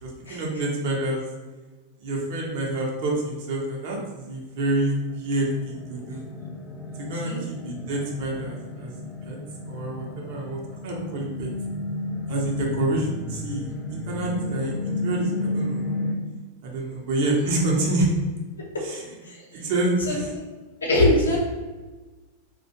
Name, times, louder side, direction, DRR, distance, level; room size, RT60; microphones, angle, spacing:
voice 1, 0.0-1.2 2.0-6.2 7.0-8.9 9.2-9.4 9.7-11.5 12.3-15.9 16.6-18.1 18.8-19.2 19.5-20.3, right 2 dB, 50° right, -1 dB, 0.6 m, -27 dB
sound 1, 5.0-16.1, left 2 dB, 5° left, 0.5 m, -32 dB
voice 2, 20.8-21.4, left 1 dB, 75° left, -2 dB, 0.6 m, -21 dB
2.3 x 2.1 x 2.7 m, 1.2 s
figure-of-eight pair, 90°, 0 cm